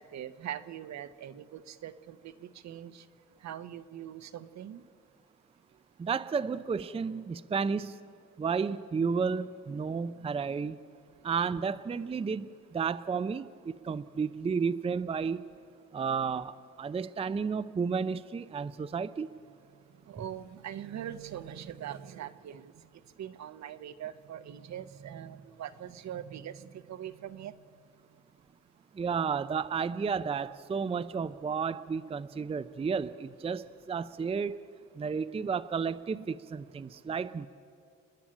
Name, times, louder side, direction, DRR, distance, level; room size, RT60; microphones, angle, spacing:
voice 1, 0.0-3.1 3.4-4.8 20.1-22.7 23.2-27.6, right 10 dB, 65° right, 12 dB, 0.9 m, -42 dB
voice 2, 6.0-8.0 8.4-10.8 11.2-15.4 15.9-19.3 28.9-34.6 35.0-37.5, right 5 dB, 20° right, 12 dB, 0.5 m, -32 dB
30.0 x 10.0 x 8.8 m, 2.3 s
cardioid pair, 90°, 30 cm